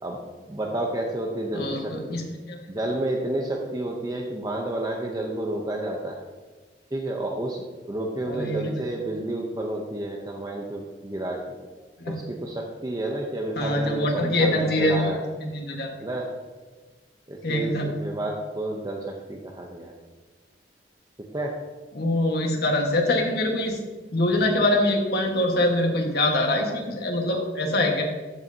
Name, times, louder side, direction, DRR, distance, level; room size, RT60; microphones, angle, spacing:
voice 1, 0.5-2.2 2.7-6.2 6.9-11.6 12.1-15.2 16.0-16.3 17.3-19.9 21.3-21.5, right 1 dB, 20° right, 0 dB, 0.7 m, -30 dB
voice 2, 1.5-2.2 2.5-2.6 8.3-8.6 12.0-12.1 13.6-15.1 15.5-15.9 17.4-17.9 21.9-23.8 24.1-28.0, left 1 dB, 65° left, 1 dB, 1.4 m, -24 dB
14.0 x 5.5 x 2.7 m, 1.3 s
head